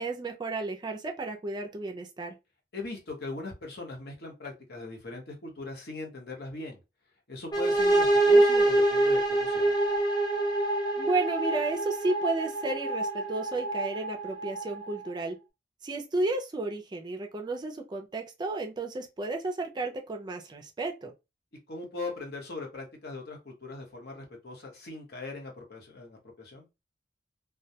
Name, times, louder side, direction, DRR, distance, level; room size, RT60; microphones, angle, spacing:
voice 1, 0.0-2.3 11.0-15.4 15.8-21.1, right 2 dB, 25° right, 0.4 m, -32 dB
voice 2, 2.7-6.8 7.3-9.8 21.7-26.7, left 3 dB, 60° left, 0.9 m, -40 dB
sound 1, 7.5-15.2, right 2 dB, 25° left, 0.6 m, -26 dB
2.2 x 2.1 x 2.7 m
head